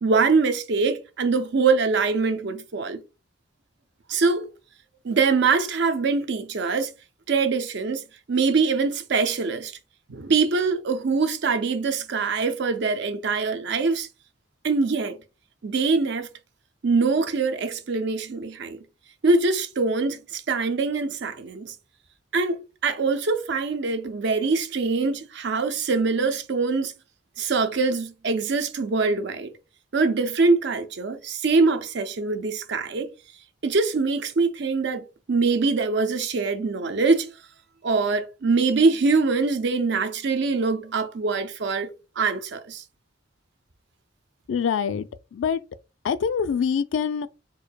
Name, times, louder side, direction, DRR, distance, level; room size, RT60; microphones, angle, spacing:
voice 1, 0.0-3.0 4.1-4.5 5.0-6.9 7.3-9.7 10.1-14.1 14.6-15.2 15.6-16.3 16.8-18.8 19.2-21.7 22.3-26.9 27.4-29.5 29.9-33.1 33.6-37.3 37.8-41.9 42.2-42.8, right 4 dB, 65° right, 0.6 m, -23 dB
voice 2, 44.5-45.6 46.0-47.3, left 6 dB, 70° left, 0.3 m, -25 dB
4.4 x 2.6 x 2.2 m
head